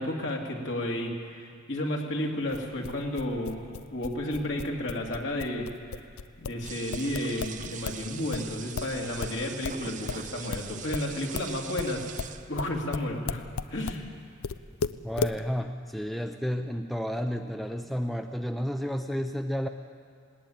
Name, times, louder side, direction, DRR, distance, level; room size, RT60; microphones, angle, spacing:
voice 1, 0.0-3.6 3.9-5.7 6.4-12.1 12.5-13.4 13.7-14.1, left 1 dB, 60° left, 0 dB, 2.6 m, -32 dB
sound 1, 2.5-8.0 8.3-14.0 14.4-15.4, left 5 dB, 90° left, 0.6 m, -35 dB
sound 2, 6.6-12.8, right 8 dB, 35° right, 0.7 m, -42 dB
voice 2, 15.0-19.7, equal, ahead, 6 dB, 0.5 m, -31 dB
19.5 x 19.0 x 8.7 m, 2.2 s
head